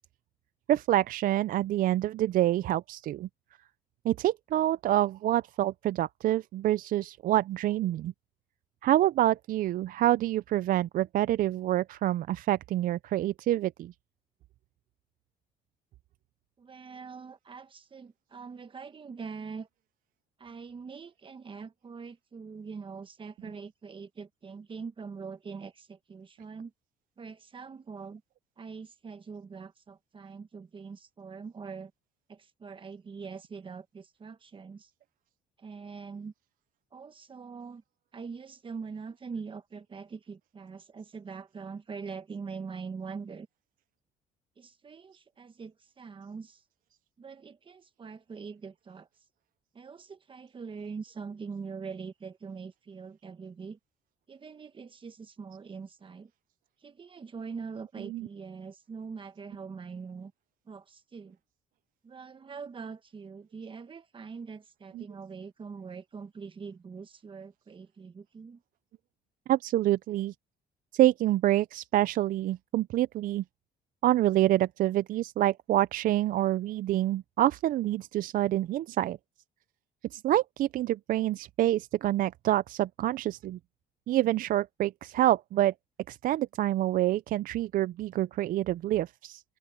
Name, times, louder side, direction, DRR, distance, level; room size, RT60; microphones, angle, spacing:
voice 1, 0.7-3.3 4.0-8.1 8.8-13.9 58.0-58.3 64.9-65.1 69.5-70.3 70.9-73.4 74.0-79.2 80.1-83.6 84.1-85.7 86.1-89.4, right 14 dB, 55° right, 0.4 m, -27 dB
voice 2, 16.6-19.7 20.4-26.7 27.2-28.2 28.6-31.9 32.3-34.9 35.6-36.3 36.9-37.8 38.1-43.5 44.6-46.6 47.2-49.1 49.7-53.8 54.3-56.3 56.8-60.3 60.7-61.4 62.0-68.6, right 5 dB, 30° right, 1.2 m, -43 dB
open air
cardioid pair, 110°, 17 cm